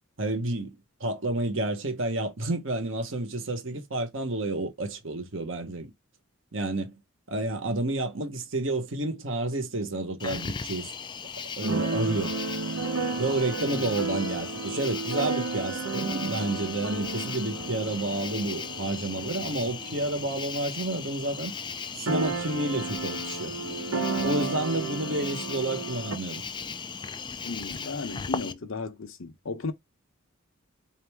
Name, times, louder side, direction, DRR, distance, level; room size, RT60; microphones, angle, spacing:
voice 1, 0.2-5.9 6.5-6.9 7.3-10.9 11.6-12.4 13.2-21.5 21.9-23.6 24.2-26.4, right 2 dB, 60° right, 1.1 m, -30 dB
Cricket, 10.2-28.5, left 6 dB, 20° left, 0.3 m, -37 dB
Keyboard (musical), 11.6-21.2 21.4-21.5 21.7-26.2, right 3 dB, 85° right, 0.9 m, -33 dB
voice 2, 27.4-29.7, left 3 dB, 70° left, 0.8 m, -35 dB
4.2 x 2.7 x 3.4 m
head